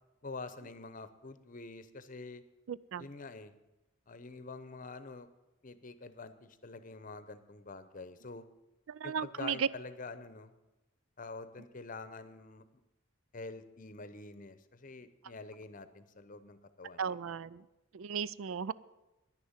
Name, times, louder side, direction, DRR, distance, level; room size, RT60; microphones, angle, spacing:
voice 1, 0.2-2.4 3.0-3.5 4.1-5.3 5.6-8.4 9.0-10.5 11.2-12.6 13.3-17.1, left 3 dB, 40° left, 12 dB, 0.8 m, -46 dB
voice 2, 2.7-3.1 8.9-9.7 17.0-17.6 17.9-18.7, right 7 dB, 75° right, 18 dB, 0.4 m, -35 dB
10.5 x 10.5 x 7.3 m, 1.0 s
head